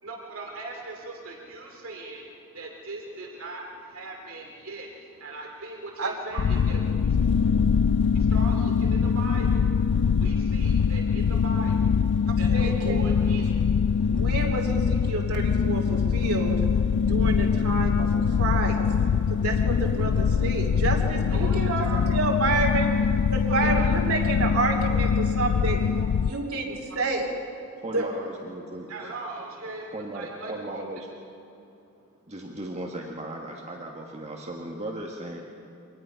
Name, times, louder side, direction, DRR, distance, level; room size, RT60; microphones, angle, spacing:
voice 1, 0.0-14.2 21.3-22.1 23.6-23.9 25.9-26.1 26.9-27.0 28.0-28.1 28.9-30.8, right 2 dB, 65° right, 0 dB, 2.6 m, -40 dB
voice 2, 6.0-6.5 12.3-13.4 14.1-16.5 17.1-18.8 19.3-22.9 23.3-25.8 26.2-27.3 27.9-28.1, right 3 dB, 85° right, 0 dB, 3.0 m, -29 dB
sound 1, 6.4-26.3, left 6 dB, 85° left, 0.4 m, -23 dB
voice 3, 27.8-28.9 29.9-31.1 32.3-35.4, right 1 dB, 30° right, 0 dB, 1.6 m, -36 dB
24.5 x 19.0 x 5.8 m, 2.8 s
head